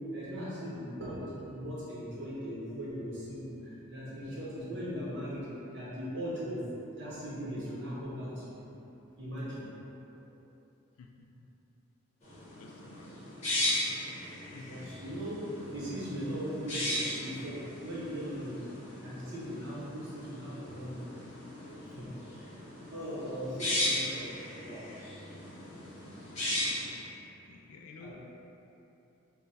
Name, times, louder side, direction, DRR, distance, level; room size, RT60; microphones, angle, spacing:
voice 1, 0.1-6.6 6.9-8.6 9.2-10.0 14.7-18.6 19.0-21.0 21.6-24.8 28.0-28.1, equal, 55° right, -9 dB, 0.8 m, -39 dB
voice 2, 11.0-11.5 12.6-13.3 14.5-15.0 27.5-28.1, left 4 dB, 90° left, 2 dB, 0.3 m, -52 dB
sound 1, 12.2-26.9, left 1 dB, 30° left, 0.9 m, -37 dB
3.8 x 2.1 x 4.0 m, 2.9 s
head